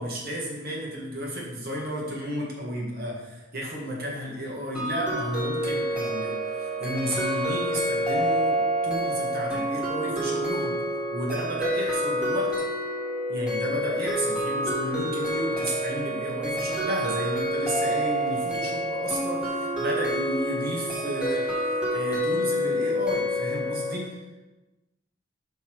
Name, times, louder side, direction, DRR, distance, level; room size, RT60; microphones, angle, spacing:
voice 1, 0.0-12.5 13.3-24.2, equal, 50° right, -3 dB, 1.7 m, -32 dB
sound 1, 4.7-23.9, equal, 5° right, 1.3 m, -28 dB
5.9 x 5.5 x 4.6 m, 1.1 s
head